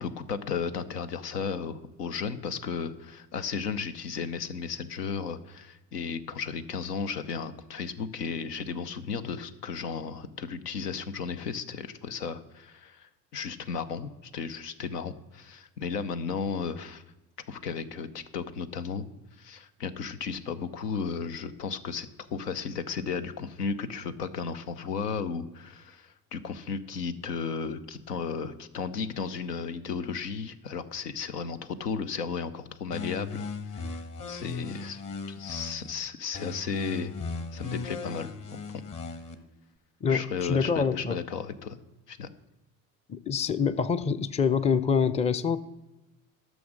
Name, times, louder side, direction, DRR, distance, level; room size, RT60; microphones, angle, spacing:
voice 1, 0.0-17.0 17.5-19.1 19.4-33.5 33.7-34.0 34.3-35.0 35.3-37.1 37.5-38.3 40.1-41.8 42.1-42.3, left 6 dB, 80° left, 10 dB, 0.8 m, -34 dB
sound 1, 32.9-35.9 36.3-39.3, left 4 dB, 40° left, 1.4 m, -37 dB
voice 2, 40.0-41.2 43.1-45.6, left 6 dB, 15° left, 13 dB, 0.5 m, -26 dB
12.5 x 6.2 x 6.4 m, 1.0 s
figure-of-eight pair, 55°, 47 cm